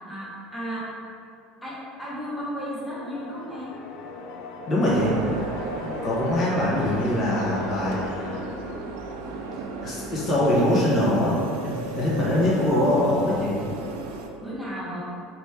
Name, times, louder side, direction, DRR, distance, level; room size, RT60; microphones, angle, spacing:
voice 1, 0.1-0.9 1.6-3.7 14.4-15.0, equal, 5° left, -8 dB, 1.1 m, -34 dB
sound 1, 2.3-10.1, left 4 dB, 60° left, 0.3 m, -38 dB
voice 2, 4.7-5.1 5.8-8.4 9.8-13.6, left 1 dB, 35° left, -7 dB, 1.2 m, -23 dB
sound 2, 4.9-14.3, right 3 dB, 90° right, 0.4 m, -35 dB
4.3 x 3.0 x 3.4 m, 2.4 s
cardioid pair, 135°, 0 cm